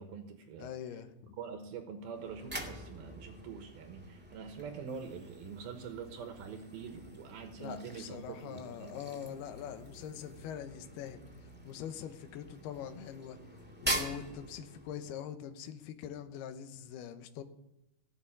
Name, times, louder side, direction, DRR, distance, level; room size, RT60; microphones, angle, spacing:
voice 1, 0.0-0.7 1.4-9.0, right 6 dB, 70° right, 6 dB, 2.9 m, -45 dB
voice 2, 0.6-1.3 7.6-11.2 11.7-13.4 13.8-17.4, left 9 dB, 75° left, 7 dB, 3.0 m, -43 dB
sound 1, 2.1-15.1, right 1 dB, 5° right, 0.8 m, -44 dB
17.5 x 8.1 x 10.0 m, 0.86 s
omnidirectional pair, 4.7 m